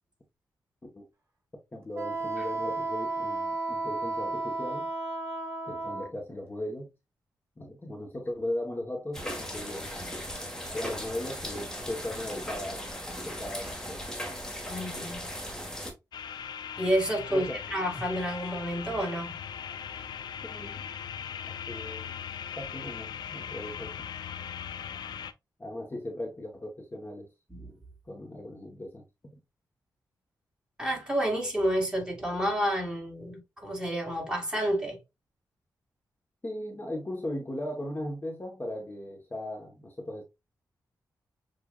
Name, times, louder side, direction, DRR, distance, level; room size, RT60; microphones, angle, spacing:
voice 1, 1.7-4.9 5.6-6.9 7.6-9.9 10.7-12.9 13.2-14.0 17.3-17.6 20.4-21.0 21.5-22.1 22.6-24.1 25.6-27.3 28.1-29.0 36.4-40.2, left 1 dB, 25° left, 1.1 m, -37 dB
Wind instrument woodwind instrument, 1.9-6.1, right 2 dB, 35° right, 2.5 m, -33 dB
sound 1, 9.1-15.9, equal, 10° left, 1.3 m, -38 dB
voice 2, 14.7-15.3 16.8-19.4 27.5-27.7 30.8-35.0, equal, 10° right, 2.1 m, -30 dB
sound 2, 16.1-25.3, left 8 dB, 80° left, 0.4 m, -39 dB
6.8 x 2.5 x 2.3 m
cardioid pair, 90°, 7 cm